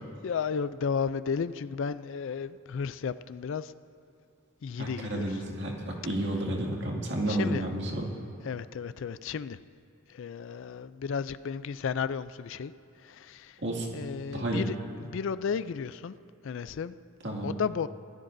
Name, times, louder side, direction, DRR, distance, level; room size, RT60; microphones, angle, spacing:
voice 1, 0.2-3.7 4.6-5.3 7.3-7.6 8.4-9.6 10.1-12.7 13.0-13.6 13.9-16.1 16.4-16.9 17.4-17.9, left 6 dB, 60° left, 0.3 m, -33 dB
voice 2, 4.8-8.1 13.6-14.1 14.3-14.7 17.2-17.5, right 1 dB, 55° right, 2.2 m, -31 dB
25.0 x 16.0 x 2.6 m
head